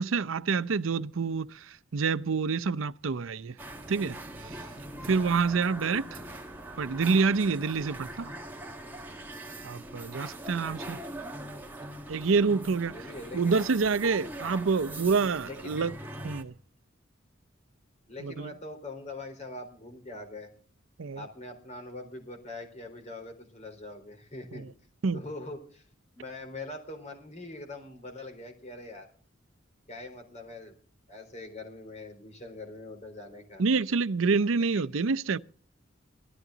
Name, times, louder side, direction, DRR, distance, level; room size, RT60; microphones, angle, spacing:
voice 1, 0.0-3.6 3.9-4.6 5.0-6.2 6.8-8.3 9.6-11.0 12.1-13.0 13.3-15.9 16.2-16.5 18.2-18.5 21.0-21.2 25.0-25.2 33.6-35.4, right 4 dB, 80° right, 0.6 m, -27 dB
sound 1, 3.6-16.4, right 1 dB, 10° right, 1.9 m, -42 dB
voice 2, 10.5-11.3 12.9-13.6 15.4-15.8 18.1-20.5 21.2-24.7 25.1-25.8 26.1-29.1 29.9-30.8 31.1-33.6, left 2 dB, 35° left, 4.1 m, -43 dB
19.0 x 13.5 x 3.9 m
head